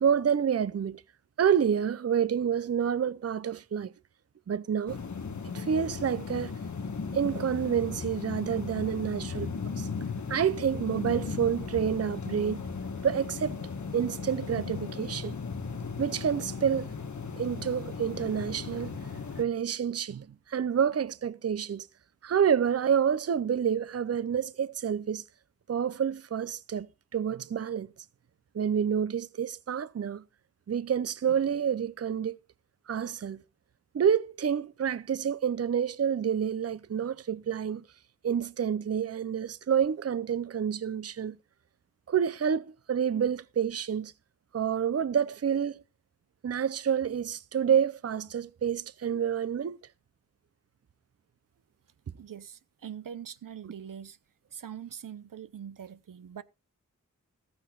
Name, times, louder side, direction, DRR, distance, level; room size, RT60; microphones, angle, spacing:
voice 1, 0.0-1.0 1.4-3.9 4.5-5.0 5.5-6.5 7.1-9.9 10.3-12.6 13.0-13.6 13.9-15.4 16.0-16.9 17.4-19.0 19.4-21.9 22.2-25.2 25.7-26.9 27.1-27.9 28.5-30.2 30.7-32.4 32.9-33.4 33.9-37.8 38.2-41.4 42.1-44.1 44.5-45.8 46.4-49.8, right 8 dB, 50° right, 0.5 m, -28 dB
sound 1, 4.9-19.4, left 5 dB, 65° left, 1.3 m, -36 dB
voice 2, 52.2-54.2 54.5-56.4, right 8 dB, 90° right, 0.7 m, -43 dB
14.5 x 14.5 x 2.4 m
wide cardioid pair, 75°, 32 cm